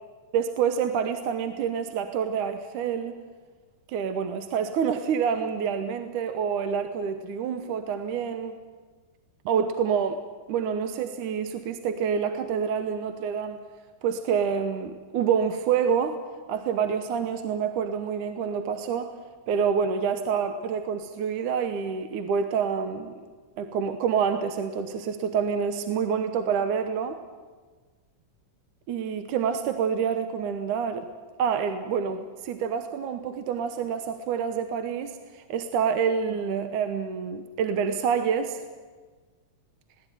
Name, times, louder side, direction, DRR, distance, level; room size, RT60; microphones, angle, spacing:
voice 1, 0.3-3.1 3.9-8.6 9.5-10.2 10.5-13.6 14.0-16.2 16.5-19.1 19.5-23.2 23.6-27.2 28.9-31.1 31.4-38.6, right 7 dB, 75° right, 8 dB, 2.4 m, -27 dB
21.0 x 17.5 x 9.4 m, 1.4 s
omnidirectional pair, 3.8 m